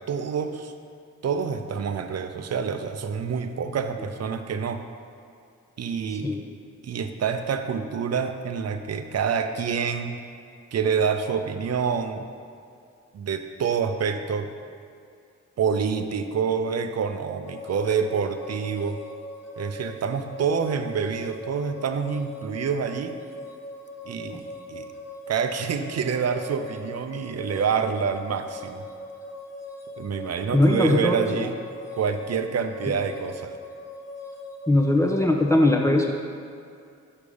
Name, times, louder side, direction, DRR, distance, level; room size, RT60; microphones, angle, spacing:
voice 1, 0.1-0.7 1.2-4.8 5.8-6.4 6.8-10.2 10.7-12.3 13.1-14.5 15.6-19.0 19.6-23.2 24.0-24.4 24.7-24.9 25.3-28.8 30.0-31.6 31.9-33.6, right 6 dB, 55° right, 8 dB, 0.6 m, -27 dB
sound 1, 17.5-35.3, left 2 dB, 55° left, 0.8 m, -40 dB
voice 2, 30.5-31.5 34.7-36.1, left 1 dB, 10° left, 0 dB, 0.7 m, -20 dB
5.2 x 5.0 x 5.0 m, 2.4 s
supercardioid pair, 45°, 31 cm